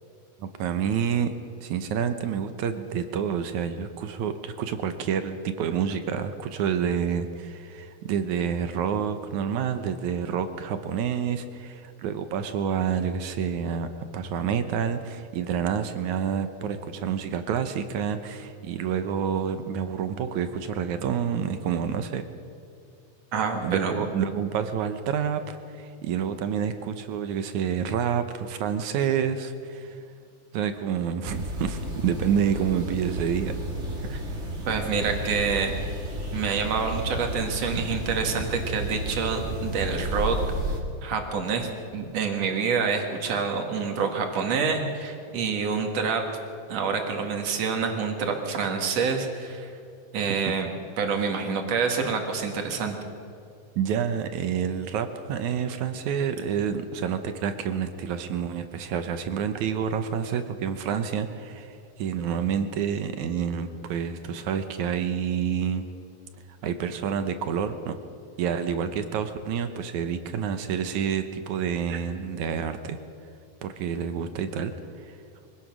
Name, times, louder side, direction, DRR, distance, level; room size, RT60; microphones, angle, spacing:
voice 1, 0.4-1.3 1.6-13.9 14.1-22.3 23.6-30.0 30.5-33.5 53.8-65.9 66.6-68.0 68.4-73.0 73.6-74.7 75.1-75.2, right 7 dB, 70° right, 9 dB, 2.0 m, -28 dB
voice 2, 23.3-24.0 34.1-34.2 34.7-35.7 36.3-40.4 41.0-46.2 46.7-49.7 50.1-50.7 51.0-53.0 71.9-72.0, right 5 dB, 50° right, 4 dB, 2.9 m, -27 dB
sound 1, 31.2-40.8, right 1 dB, 25° right, 1.7 m, -32 dB
24.0 x 17.5 x 6.2 m, 2.4 s
omnidirectional pair, 4.3 m